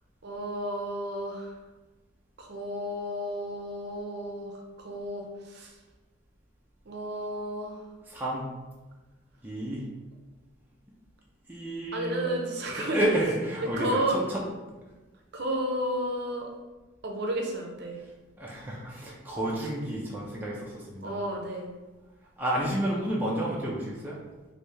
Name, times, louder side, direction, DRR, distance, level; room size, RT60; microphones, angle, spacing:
voice 1, 0.2-1.5 2.4-5.7 6.9-7.8 11.9-13.0 13.6-14.2 15.3-16.5 17.0-18.0 21.0-21.7, right 1 dB, 50° right, 1 dB, 0.6 m, -32 dB
voice 2, 8.1-8.5 9.4-9.9 11.5-12.2 12.7-14.4 18.4-21.2 22.4-24.2, right 1 dB, 10° right, -5 dB, 0.4 m, -30 dB
3.1 x 2.6 x 3.3 m, 1.2 s
head